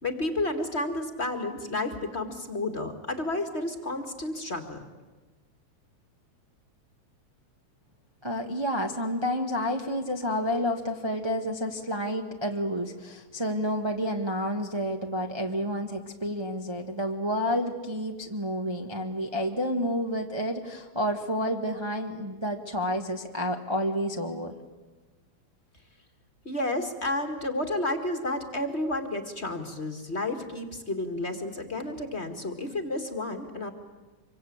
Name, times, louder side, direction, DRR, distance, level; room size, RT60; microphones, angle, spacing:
voice 1, 0.0-4.8 26.4-33.7, left 2 dB, 25° left, 6 dB, 1.6 m, -31 dB
voice 2, 8.2-24.5, equal, 25° right, 2 dB, 0.5 m, -30 dB
26.0 x 24.0 x 8.7 m, 1.3 s
omnidirectional pair, 3.4 m